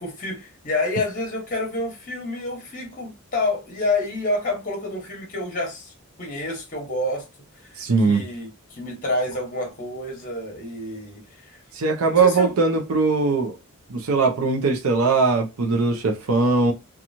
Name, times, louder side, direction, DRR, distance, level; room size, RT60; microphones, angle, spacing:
voice 1, 0.0-5.9 6.2-7.3 7.6-11.6 12.0-12.5, left 2 dB, 35° left, 1.0 m, -28 dB
voice 2, 7.8-8.2 11.7-13.5 13.9-16.7, right 4 dB, 75° right, 0.6 m, -20 dB
2.8 x 2.3 x 2.6 m
head